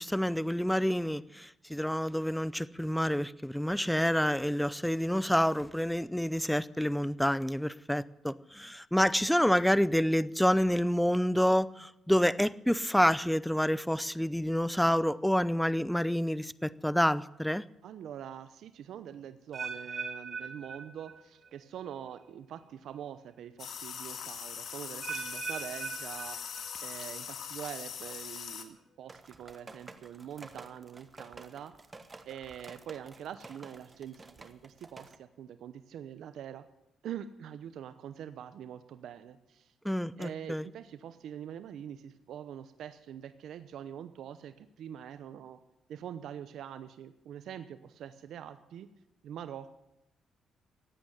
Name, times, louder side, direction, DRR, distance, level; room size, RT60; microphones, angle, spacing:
voice 1, 0.0-17.6 39.8-40.7, equal, 5° left, 0.5 m, -28 dB
voice 2, 17.8-26.4 26.8-31.8 32.3-36.7 37.0-39.7 40.2-45.6 45.9-48.9 49.2-49.7, right 9 dB, 75° right, 0.9 m, -44 dB
sound 1, 19.5-21.5 21.8-22.2 22.9-23.0 25.0-27.0 27.3-27.7 28.4-28.5, right 4 dB, 40° right, 6.5 m, -41 dB
sound 2, 23.6-28.6, left 8 dB, 65° left, 1.9 m, -41 dB
sound 3, 29.1-35.2, right 3 dB, 25° right, 1.4 m, -51 dB
15.5 x 9.1 x 9.9 m
cardioid pair, 90°, 0 cm